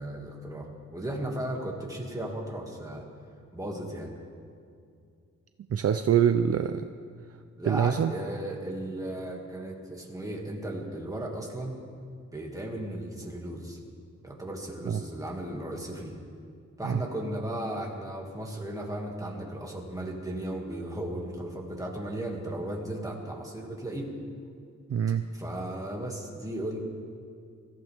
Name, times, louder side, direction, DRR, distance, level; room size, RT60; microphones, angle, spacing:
voice 1, 0.0-3.1 3.5-4.1 7.6-11.8 12.3-13.8 14.2-16.2 16.8-24.1 25.3-26.8, right 1 dB, 10° right, -1 dB, 2.1 m, -35 dB
voice 2, 5.7-6.9 7.3-7.4 7.6-8.1 14.8-15.0 16.8-17.0 24.9-25.2, right 8 dB, 55° right, 8 dB, 0.5 m, -25 dB
23.5 x 15.0 x 3.5 m, 2.4 s
wide cardioid pair, 155°, 29 cm